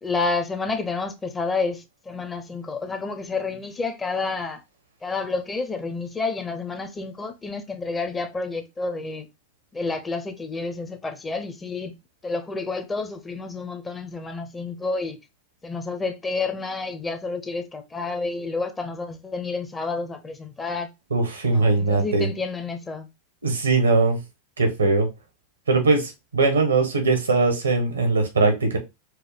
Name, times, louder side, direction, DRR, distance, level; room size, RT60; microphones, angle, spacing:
voice 1, 0.0-4.6 5.0-9.3 9.7-11.9 12.2-15.2 15.6-20.9 21.5-23.1, left 3 dB, 20° left, 0.7 m, -29 dB
voice 2, 21.1-22.3 23.4-24.2 24.6-25.1 25.7-28.8, right 3 dB, 90° right, 1.1 m, -20 dB
4.7 x 2.2 x 3.4 m
hypercardioid pair, 90°, 0 cm